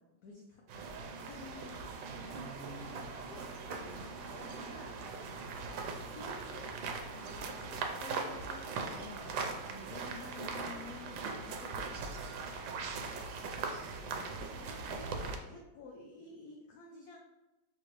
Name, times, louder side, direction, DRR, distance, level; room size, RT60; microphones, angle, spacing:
voice 1, 0.0-2.4 4.4-5.0 6.1-12.2 14.2-17.2, left 3 dB, 70° left, -1 dB, 0.9 m, -51 dB
sound 1, 0.7-15.4, right 4 dB, 90° right, 1.4 m, -40 dB
voice 2, 2.7-5.7 12.5-13.5, right 1 dB, 70° right, -4 dB, 0.6 m, -55 dB
5.7 x 2.9 x 3.0 m, 1.1 s
omnidirectional pair, 2.1 m